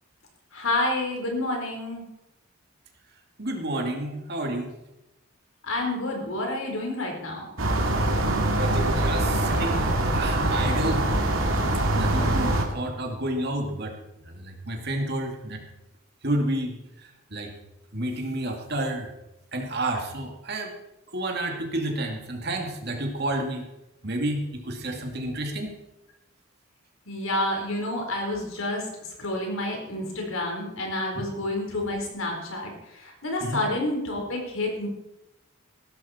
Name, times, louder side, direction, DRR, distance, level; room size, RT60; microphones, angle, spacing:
voice 1, 0.5-2.0 5.6-7.5 27.1-28.8 29.2-32.7 33.0-34.9, left 1 dB, 85° left, 1 dB, 4.4 m, -29 dB
voice 2, 3.4-4.7 8.5-11.1 11.9-15.6 16.2-16.8 17.3-17.5 17.9-19.1 19.5-20.7 21.1-23.7 24.0-25.7 31.1-31.2 33.4-33.6, right 1 dB, 50° right, 2 dB, 2.4 m, -30 dB
sound 1, 7.6-12.6, right 1 dB, 80° right, 2.5 m, -23 dB
16.0 x 13.0 x 4.4 m, 0.91 s
head